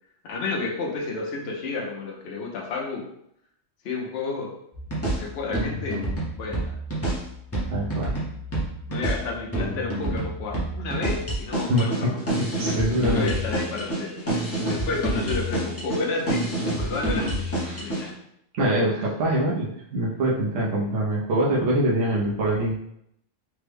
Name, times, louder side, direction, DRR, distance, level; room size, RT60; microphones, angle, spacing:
voice 1, 0.3-3.1 3.8-4.5 5.0-6.1 6.4-6.8 8.9-12.2 13.0-14.2 14.6-17.4 17.8-18.2 19.0-19.1, left 4 dB, 60° left, -1 dB, 0.8 m, -31 dB
sound 1, 4.7-18.1, right 1 dB, 15° left, 0.6 m, -28 dB
voice 2, 7.7-8.1 11.7-11.9 12.6-13.3 17.7-17.8 18.5-22.8, right 1 dB, 75° right, -4 dB, 1.0 m, -24 dB
3.4 x 2.1 x 3.3 m, 0.74 s
omnidirectional pair, 1.3 m